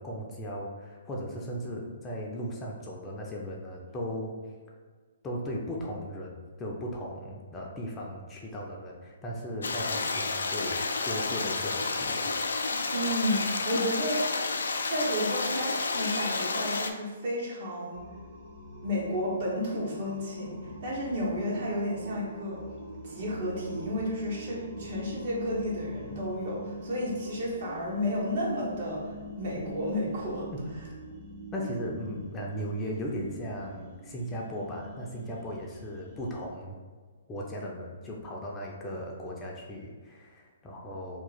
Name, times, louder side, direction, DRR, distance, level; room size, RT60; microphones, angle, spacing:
voice 1, 0.0-4.4 5.2-12.3 31.5-36.7 37.3-41.2, equal, 15° left, -2 dB, 0.5 m, -37 dB
sound 1, 9.6-16.9, left 3 dB, 75° left, 0.3 m, -30 dB
voice 2, 12.9-14.5 14.8-18.0 18.8-22.6 23.0-30.5 31.6-31.7, equal, 55° right, -5 dB, 1.2 m, -32 dB
sound 2, 17.9-36.5, right 1 dB, 30° right, 1.0 m, -44 dB
2.9 x 2.4 x 3.9 m, 1.5 s
figure-of-eight pair, 130°, 0 cm